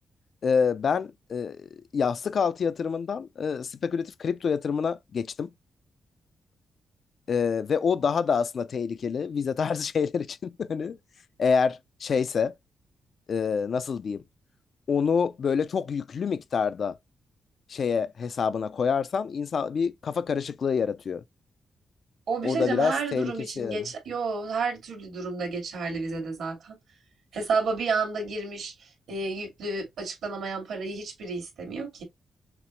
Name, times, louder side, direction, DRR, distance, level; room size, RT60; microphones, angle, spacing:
voice 1, 0.4-5.5 7.3-11.0 11.4-12.5 13.3-14.2 14.9-17.0 17.7-21.2 22.4-23.8, left 6 dB, 60° left, 0.4 m, -27 dB
voice 2, 22.3-26.8 27.3-32.0, right 4 dB, 80° right, 2.2 m, -31 dB
5.9 x 2.1 x 3.1 m
cardioid pair, 90°, 0 cm